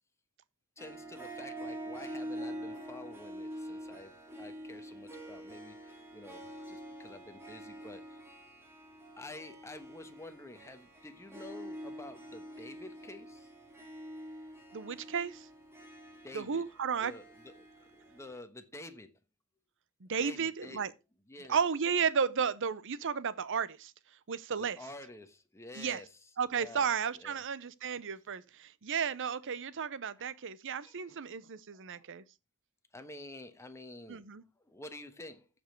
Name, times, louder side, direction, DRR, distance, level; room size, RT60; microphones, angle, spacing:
voice 1, 0.8-8.2 9.2-13.5 16.2-16.6 17.0-19.2 20.2-20.9 21.3-21.6 24.6-26.2 26.5-26.9 27.1-27.4 30.2-30.3 30.8-31.2 31.9-32.0 32.9-34.3 34.6-35.5, left 2 dB, 15° left, 1.2 m, -49 dB
Harp, 0.8-18.4, right 1 dB, 10° right, 2.5 m, -46 dB
voice 2, 14.7-15.5 16.3-17.1 20.0-20.9 21.5-23.9 24.3-24.8 25.8-26.0 26.4-32.2 34.1-34.4, right 6 dB, 60° right, 0.7 m, -33 dB
14.5 x 5.4 x 4.5 m
head